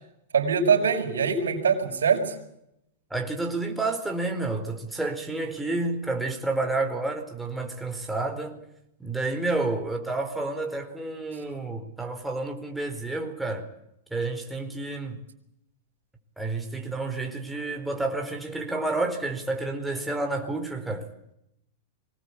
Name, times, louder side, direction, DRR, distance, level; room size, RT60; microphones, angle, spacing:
voice 1, 0.3-2.3, right 6 dB, 85° right, 5.7 m, -23 dB
voice 2, 3.1-8.6 9.0-13.7 14.1-15.2 16.4-21.1, right 2 dB, 5° right, 4.3 m, -30 dB
24.0 x 19.5 x 8.6 m
hypercardioid pair, 120°, 0 cm